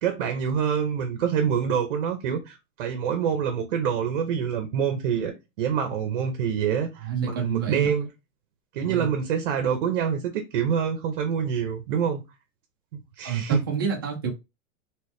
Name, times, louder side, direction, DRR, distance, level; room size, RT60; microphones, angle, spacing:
voice 1, 0.0-8.1 8.7-12.2 12.9-13.6, right 7 dB, 45° right, 0.7 m, -26 dB
voice 2, 7.0-7.9 8.8-9.1 13.2-14.3, right 7 dB, 20° right, 0.3 m, -28 dB
3.3 x 3.1 x 3.0 m
supercardioid pair, 170°, 39 cm